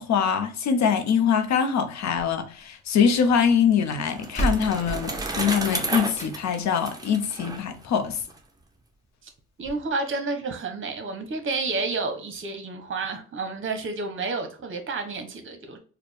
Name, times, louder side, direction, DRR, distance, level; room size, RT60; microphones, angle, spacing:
voice 1, 0.0-8.2, left 7 dB, 65° left, 0.7 m, -23 dB
sound 1, 2.0-3.2 4.0-4.1 4.4-6.6 8.0-8.1 8.6-8.7 8.9-9.0 9.6-9.7, right 2 dB, 20° left, 1.1 m, -33 dB
Bicycle, 3.3-8.4, right 3 dB, 10° right, 0.7 m, -33 dB
voice 2, 9.6-15.8, right 3 dB, 40° right, 0.9 m, -30 dB
4.2 x 2.2 x 3.3 m
cardioid pair, 90°, 30 cm